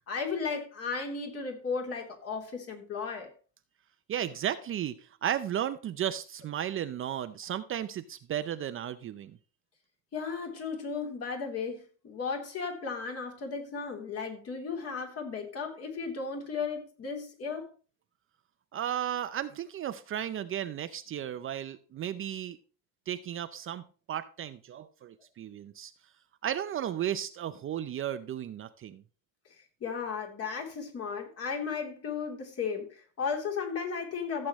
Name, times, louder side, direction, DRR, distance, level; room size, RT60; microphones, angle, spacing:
voice 1, 0.1-3.3 10.1-17.7 29.8-34.5, left 5 dB, 40° left, 1 dB, 3.3 m, -35 dB
voice 2, 4.1-9.4 18.7-22.6 23.1-23.8 24.1-25.9 26.4-29.0, right 10 dB, 35° right, 11 dB, 0.6 m, -34 dB
15.0 x 7.7 x 3.1 m, 0.37 s
cardioid pair, 135°, 36 cm